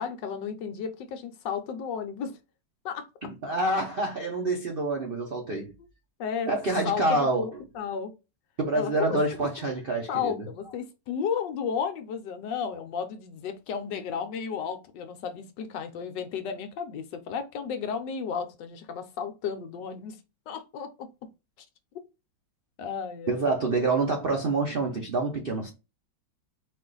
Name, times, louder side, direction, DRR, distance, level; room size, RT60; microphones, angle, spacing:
voice 1, 0.0-2.4 2.8-3.1 6.2-6.5 6.8-8.1 8.7-9.5 10.1-20.2 20.5-21.1 21.6-21.7 22.8-23.5, left 7 dB, 75° left, 1.2 m, -33 dB
voice 2, 3.2-5.7 6.5-7.5 8.6-10.3 23.3-25.7, right 2 dB, 60° right, 0.5 m, -27 dB
4.2 x 2.5 x 3.8 m
omnidirectional pair, 2.1 m